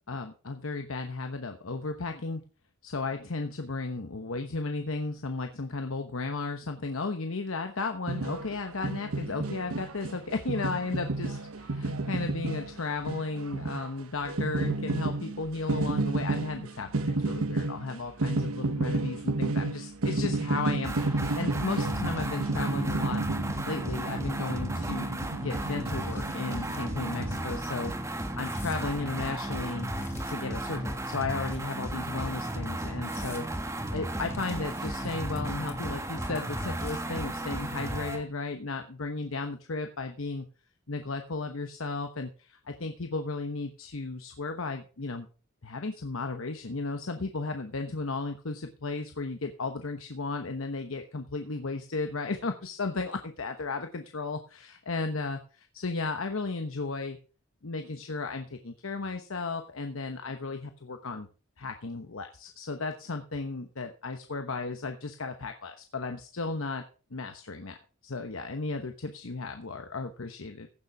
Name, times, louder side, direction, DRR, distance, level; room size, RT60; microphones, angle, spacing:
voice 1, 0.1-2.4 2.8-23.2 23.7-29.9 30.3-40.5 40.9-45.3 45.6-57.2 57.6-61.3 61.6-66.8 67.1-67.8 68.0-70.7, left 3 dB, 75° left, 6 dB, 1.0 m, -35 dB
sound 1, 8.1-27.4, right 2 dB, 85° right, 1.1 m, -31 dB
sound 2, 20.8-38.2, right 1 dB, 15° right, 1.4 m, -34 dB
sound 3, 25.6-26.9 27.3-27.5 28.4-28.8 29.5-30.6 31.5-32.1 32.6-32.7 33.0-33.4 34.3-35.4 35.7-36.0 36.2-37.2, left 3 dB, 10° left, 2.2 m, -52 dB
15.5 x 6.9 x 4.8 m, 0.37 s
head